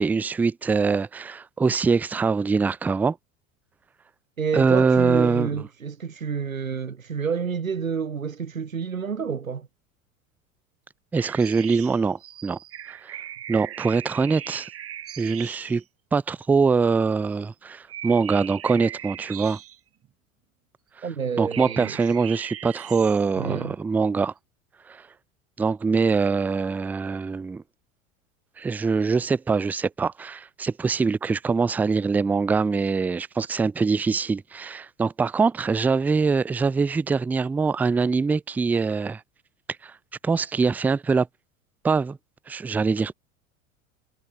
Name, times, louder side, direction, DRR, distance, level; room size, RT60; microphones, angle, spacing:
voice 1, 0.0-3.2 4.5-5.5 11.1-12.6 12.9-13.2 13.5-14.7 15.2-15.8 16.1-19.6 21.4-24.3 24.9-25.0 25.6-27.6 28.6-39.2 39.8-39.9 40.2-41.3 41.8-42.2 42.5-43.1, right 4 dB, 5° right, 0.3 m, -23 dB
voice 2, 4.4-9.7 21.0-22.0 23.4-23.7, right 6 dB, 80° right, 2.9 m, -29 dB
sound 1, 11.2-15.8 17.3-17.5 17.9-20.1 21.5-23.4, right 11 dB, 35° right, 7.8 m, -39 dB
figure-of-eight pair, 75°, 40 cm